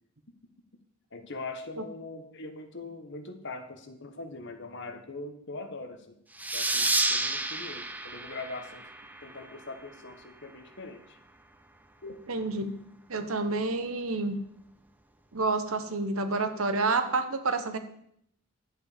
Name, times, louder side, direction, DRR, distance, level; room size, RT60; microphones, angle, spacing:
voice 1, 1.1-6.2 6.5-8.9 9.2-11.2 12.0-12.2 16.5-16.7, left 3 dB, 55° left, 7 dB, 1.2 m, -42 dB
sound 1, 6.4-9.6, right 2 dB, 10° right, 0.6 m, -30 dB
voice 2, 12.3-12.8 13.1-14.4 15.3-17.8, right 3 dB, 75° right, 9 dB, 1.1 m, -29 dB
11.0 x 8.1 x 5.0 m, 0.71 s
head